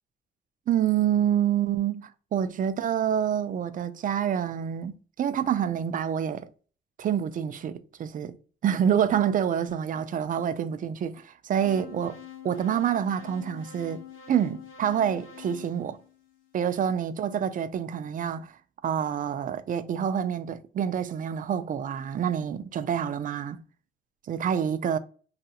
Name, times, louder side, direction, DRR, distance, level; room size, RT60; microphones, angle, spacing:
voice 1, 0.7-6.5 7.0-8.3 8.6-12.2 12.4-14.0 14.3-16.0 16.5-23.6 24.3-25.0, right 9 dB, 45° right, 0.4 m, -27 dB
sound 1, 11.6-16.7, left 10 dB, 80° left, 0.8 m, -46 dB
2.8 x 2.4 x 2.3 m
cardioid pair, 90°, 20 cm